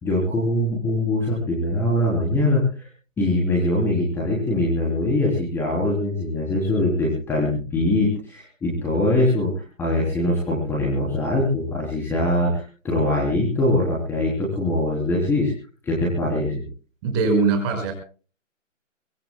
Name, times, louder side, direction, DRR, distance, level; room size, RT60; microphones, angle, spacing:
voice 1, 0.0-2.9 3.2-15.5 15.8-16.6, left 1 dB, 5° left, -4 dB, 3.5 m, -22 dB
voice 2, 17.0-17.9, right 4 dB, 20° right, 4 dB, 5.9 m, -21 dB
24.0 x 20.5 x 2.3 m, 0.39 s
hypercardioid pair, 160°, 39 cm